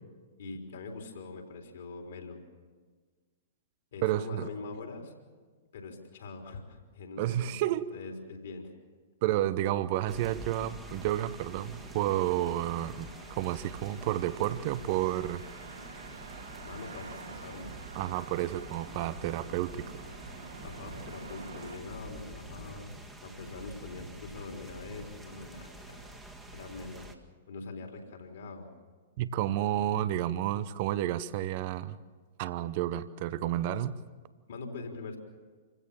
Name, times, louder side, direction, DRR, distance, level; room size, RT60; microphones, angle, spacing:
voice 1, 0.4-2.4 3.9-5.1 5.7-7.6 7.9-8.7 16.6-17.7 20.6-22.9 23.2-26.1 26.5-27.1 27.5-28.7 34.5-35.2, left 3 dB, 55° left, 2 dB, 3.8 m, -43 dB
voice 2, 4.0-4.5 7.2-7.9 9.2-15.4 17.9-20.0 29.2-32.0 32.4-34.0, right 13 dB, 40° right, 16 dB, 0.9 m, -31 dB
sound 1, 10.1-27.2, right 1 dB, 5° right, 1.8 m, -47 dB
sound 2, 10.2-21.8, right 4 dB, 65° right, 2.9 m, -49 dB
27.5 x 16.0 x 7.3 m, 1.5 s
figure-of-eight pair, 110°, 0 cm